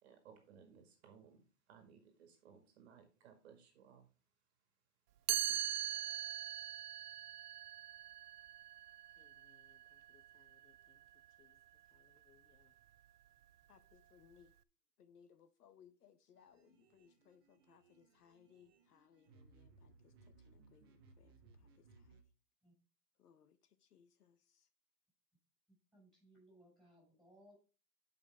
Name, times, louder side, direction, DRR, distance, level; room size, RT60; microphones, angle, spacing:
voice 1, 0.0-4.1, right 7 dB, 40° right, 2.0 m, -62 dB
Chime, 5.3-11.1, right 12 dB, 70° right, 0.6 m, -42 dB
voice 2, 9.2-11.6 11.9-12.7 13.7-14.5 15.0-22.2 23.2-24.7, left 8 dB, 65° left, 1.0 m, -68 dB
sound 1, 16.4-22.2, right 3 dB, 15° right, 0.7 m, -65 dB
voice 3, 25.9-27.5, equal, ahead, 5.8 m, -65 dB
12.0 x 5.4 x 3.4 m
hypercardioid pair, 160°, 49 cm